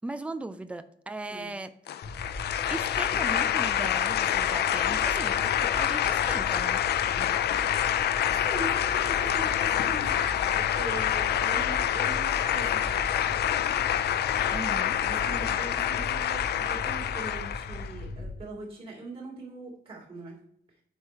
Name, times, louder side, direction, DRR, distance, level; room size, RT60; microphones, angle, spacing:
voice 1, 0.0-1.7 2.7-6.8 14.5-15.0, right 2 dB, 5° right, 10 dB, 0.4 m, -38 dB
sound 1, 1.9-17.9, left 10 dB, 70° left, 0.4 m, -27 dB
sound 2, 2.0-18.4, left 1 dB, 25° left, 0.8 m, -39 dB
voice 2, 7.7-13.4 15.0-20.4, right 2 dB, 30° right, -3 dB, 3.0 m, -41 dB
9.5 x 3.5 x 4.4 m, 0.68 s
wide cardioid pair, 155°, 18 cm